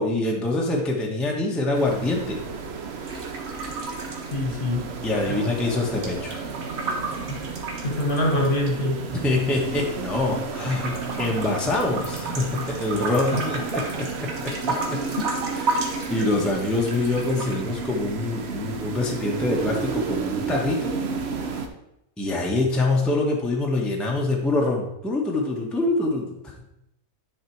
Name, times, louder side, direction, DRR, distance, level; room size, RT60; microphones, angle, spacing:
voice 1, 0.0-2.4 5.0-6.3 9.1-15.0 15.5-20.9 22.2-26.4, left 2 dB, ahead, -1 dB, 1.0 m, -25 dB
sound 1, 1.7-21.7, right 5 dB, 55° right, 1.0 m, -32 dB
sound 2, 3.0-5.1 5.3-8.7 9.3-10.3 10.7-17.6, right 3 dB, 80° right, 1.7 m, -33 dB
voice 2, 4.3-4.9 5.3-5.4 7.3-7.4 7.8-9.0, left 1 dB, 40° left, 1 dB, 1.5 m, -24 dB
10.0 x 4.4 x 4.5 m, 0.85 s
omnidirectional pair, 1.4 m